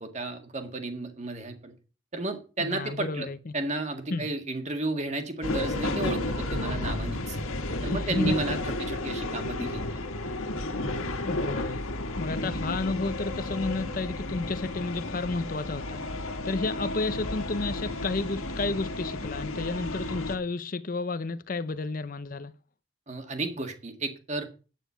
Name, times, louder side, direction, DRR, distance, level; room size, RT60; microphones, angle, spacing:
voice 1, 0.0-1.7 2.1-3.3 3.5-7.4 7.8-10.0 23.1-24.5, right 2 dB, 35° right, 1.8 m, -33 dB
voice 2, 2.6-3.5 4.1-4.3 7.8-8.6 11.2-11.8 12.2-22.5, left 3 dB, 40° left, 0.5 m, -31 dB
sound 1, 5.4-20.4, left 2 dB, 90° left, 1.6 m, -32 dB
9.1 x 9.1 x 5.7 m
head